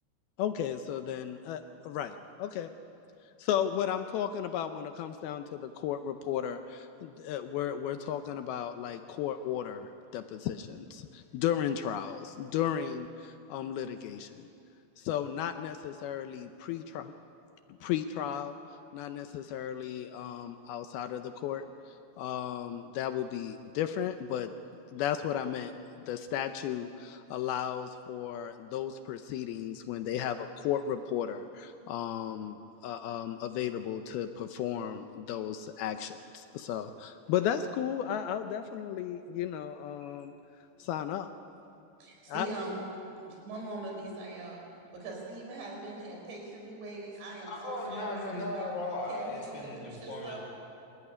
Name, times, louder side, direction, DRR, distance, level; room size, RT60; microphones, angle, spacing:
voice 1, 0.4-2.7 3.4-14.5 15.0-17.1 17.8-18.6 18.9-24.5 24.9-25.7 26.1-32.6 32.8-40.3 40.8-41.3 42.3-42.5, left 9 dB, 80° left, 8 dB, 2.3 m, -34 dB
voice 2, 42.0-42.8 43.2-44.6 44.9-48.7 49.1-50.4, right 2 dB, 75° right, 0 dB, 6.6 m, -42 dB
voice 3, 47.5-50.4, left 1 dB, 35° left, -1 dB, 5.2 m, -37 dB
26.5 x 14.0 x 9.9 m, 2.6 s
omnidirectional pair, 5.1 m